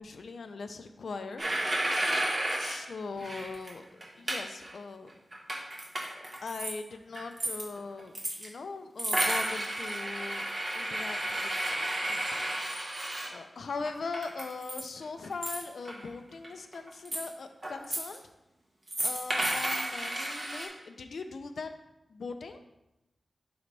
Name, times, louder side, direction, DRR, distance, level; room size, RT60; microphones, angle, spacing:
voice 1, 0.0-1.4 2.6-5.1 6.1-10.5 10.7-12.4 13.3-18.2 19.0-21.7 22.1-22.6, left 4 dB, 80° left, 7 dB, 0.5 m, -40 dB
sound 1, 1.4-2.8 3.2-3.7 4.0-4.7 5.1-6.7 7.1-8.5 9.0-13.3 13.9-15.0 15.2-16.1 16.4-17.3 17.6-18.2 18.9-20.7, right 1 dB, 35° right, 1.4 m, -32 dB
11.0 x 3.9 x 3.3 m, 0.92 s
wide cardioid pair, 115°, 0 cm